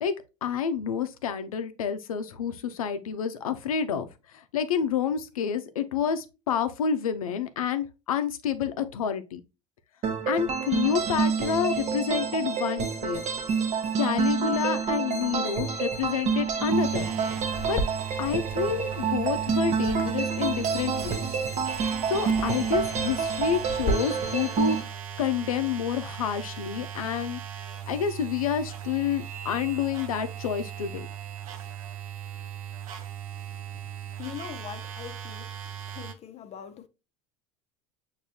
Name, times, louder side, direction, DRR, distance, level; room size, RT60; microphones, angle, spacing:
voice 1, 0.4-9.4 10.3-13.2 14.0-17.1 17.7-17.8 18.2-21.2 22.1-27.4 27.9-31.1, left 7 dB, 85° left, 0.6 m, -29 dB
sound 1, 10.0-24.8, right 6 dB, 40° right, 0.8 m, -28 dB
sound 2, 16.7-36.1, right 10 dB, 80° right, 0.6 m, -38 dB
sound 3, 17.5-23.9, equal, 15° left, 0.9 m, -37 dB
voice 2, 34.2-35.5 35.9-36.9, left 9 dB, 35° left, 0.6 m, -41 dB
6.7 x 2.7 x 2.7 m
hypercardioid pair, 80°, 18 cm